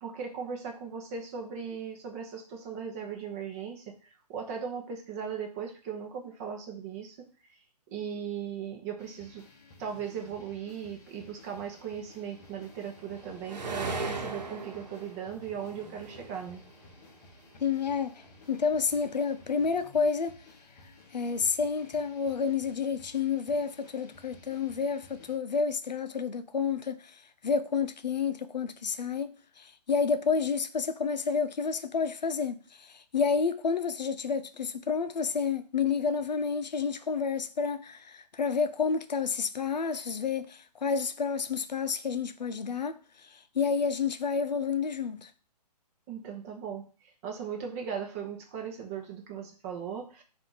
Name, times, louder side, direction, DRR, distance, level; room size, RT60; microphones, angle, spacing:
voice 1, 0.0-7.3 7.9-9.4 9.8-16.6 46.1-50.2, right 7 dB, 25° right, 0.8 m, -38 dB
sound 1, 9.0-25.4, left 3 dB, 25° left, 0.8 m, -55 dB
sound 2, 12.0-17.7 18.1-19.8, right 3 dB, 90° right, 1.0 m, -39 dB
voice 2, 17.6-20.4 21.1-45.3, left 5 dB, 90° left, 0.6 m, -30 dB
4.3 x 2.6 x 3.9 m
hypercardioid pair, 150°, 21 cm